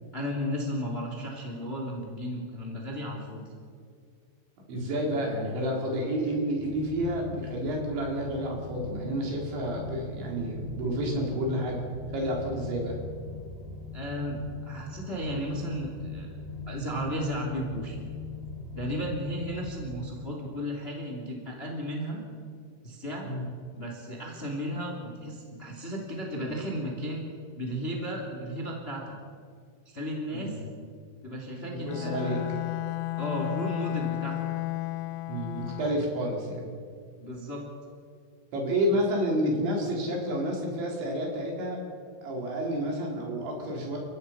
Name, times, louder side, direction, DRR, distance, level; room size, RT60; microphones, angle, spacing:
voice 1, 0.1-3.4 13.9-16.3 16.7-18.0 18.7-22.2 22.8-23.3 23.7-27.2 27.6-29.1 29.8-30.6 31.2-32.5 33.2-34.4 37.2-37.6, equal, 20° left, 1 dB, 2.1 m, -34 dB
voice 2, 4.7-11.8 12.1-13.0 23.2-23.5 30.4-30.6 31.9-32.4 35.3-36.8 38.5-41.8 42.2-44.0, equal, 75° right, -1 dB, 6.0 m, -30 dB
sound 1, 6.5-19.9, left 2 dB, 50° right, 8.6 m, -41 dB
Bowed string instrument, 31.9-36.2, left 17 dB, 80° left, 2.8 m, -33 dB
30.0 x 15.5 x 5.8 m, 2.1 s
omnidirectional pair, 5.3 m